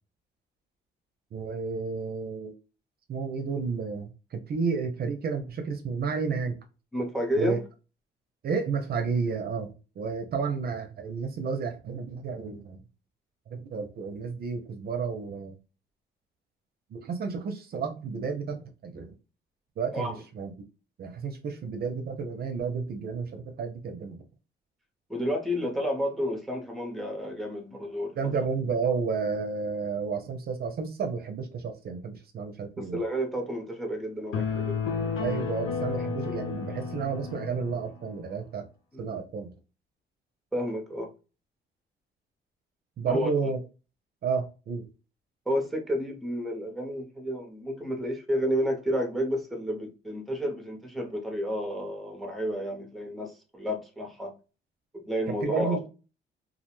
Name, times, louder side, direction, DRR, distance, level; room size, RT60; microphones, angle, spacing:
voice 1, 1.3-2.5 3.1-6.6 7.4-7.6 8.4-12.8 13.5-15.6 16.9-19.1 19.8-20.5 21.0-24.2 28.2-33.0 35.2-38.7 39.0-39.5 43.0-43.6 44.2-44.9 55.3-55.9, right 5 dB, 50° right, 0.5 m, -31 dB
voice 2, 6.9-7.6 19.9-20.2 25.1-28.1 32.9-34.9 38.9-39.0 40.5-41.1 43.1-43.3 45.5-54.3 54.9-55.8, equal, ahead, 0.7 m, -31 dB
sound 1, 34.3-37.9, left 5 dB, 85° left, 0.6 m, -32 dB
2.3 x 2.0 x 3.0 m
cardioid pair, 90°, 20 cm